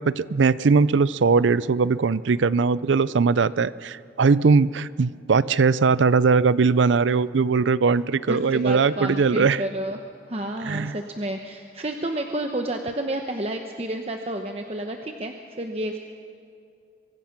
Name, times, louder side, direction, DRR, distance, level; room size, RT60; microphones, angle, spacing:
voice 1, 0.0-9.6 10.7-11.0, right 4 dB, 80° right, 18 dB, 0.5 m, -20 dB
voice 2, 8.3-10.0 10.3-16.0, right 1 dB, 35° right, 4 dB, 0.9 m, -30 dB
24.0 x 24.0 x 5.9 m, 2.5 s
head